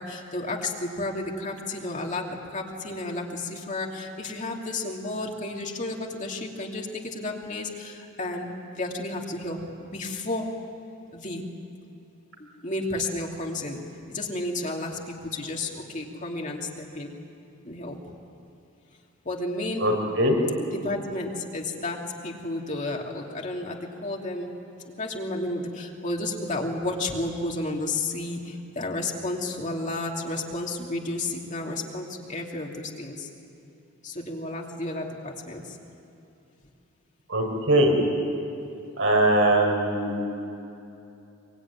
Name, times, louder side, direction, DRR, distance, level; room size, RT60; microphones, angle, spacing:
voice 1, 0.0-10.5 11.1-11.4 12.6-13.8 14.1-17.1 17.6-18.0 19.2-19.9 20.7-24.5 24.9-33.3 34.0-35.8, left 2 dB, 40° left, 0 dB, 2.8 m, -32 dB
voice 2, 19.8-20.4 37.3-37.9 39.0-40.3, right 1 dB, 75° right, 1 dB, 5.9 m, -21 dB
25.0 x 24.0 x 9.7 m, 2.8 s
head